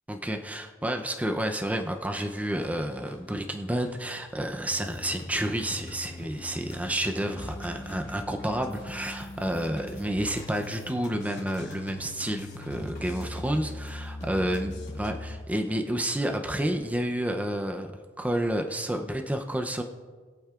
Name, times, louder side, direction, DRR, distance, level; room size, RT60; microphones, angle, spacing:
voice 1, 0.1-17.9 18.2-19.8, right 1 dB, 10° right, 4 dB, 0.6 m, -30 dB
sound 1, 1.9-15.0, left 2 dB, 65° left, 2.7 m, -55 dB
sound 2, 4.7-15.4, left 1 dB, 40° left, 2.3 m, -41 dB
21.0 x 8.5 x 2.4 m, 1.5 s
head